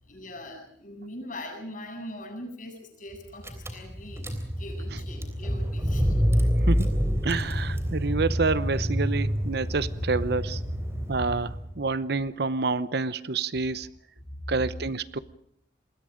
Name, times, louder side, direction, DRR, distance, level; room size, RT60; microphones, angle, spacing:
voice 1, 0.0-6.2 14.2-14.5, left 1 dB, 45° left, 3 dB, 7.8 m, -42 dB
Car / Engine, 3.1-3.2 3.4-11.8, equal, 15° right, 3.4 m, -27 dB
voice 2, 6.6-10.6 11.1-13.9 14.5-15.2, right 3 dB, 60° right, 16 dB, 0.8 m, -28 dB
27.5 x 21.5 x 5.1 m, 0.70 s
head